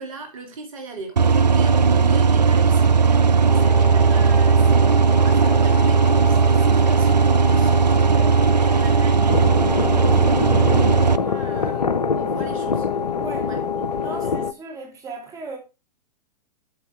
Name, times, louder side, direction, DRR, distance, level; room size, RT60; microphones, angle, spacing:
voice 1, 0.0-7.7 8.6-11.8 12.1-12.9 13.4-14.4, right 3 dB, 55° right, 2.4 m, -39 dB
sound 1, 1.2-11.2, right 5 dB, 80° right, 0.5 m, -17 dB
sound 2, 3.5-14.5, left 8 dB, 15° left, 0.5 m, -30 dB
sound 3, 9.3-14.5, left 5 dB, 80° left, 0.6 m, -25 dB
voice 2, 13.2-13.5 14.0-15.6, right 3 dB, 15° right, 2.4 m, -36 dB
8.0 x 5.3 x 4.6 m
figure-of-eight pair, 110°, 21 cm